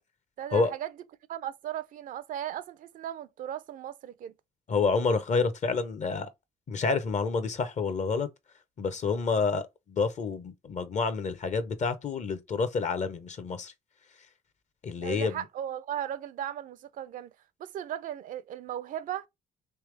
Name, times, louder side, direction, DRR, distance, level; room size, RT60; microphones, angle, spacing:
voice 1, 0.4-0.9 1.3-4.3 15.0-17.3 17.6-19.3, right 11 dB, 60° right, 0.4 m, -36 dB
voice 2, 4.7-6.3 6.7-8.3 8.8-13.7 14.8-15.4, left 4 dB, 50° left, 0.8 m, -28 dB
3.4 x 3.0 x 3.3 m
supercardioid pair, 60°, 15 cm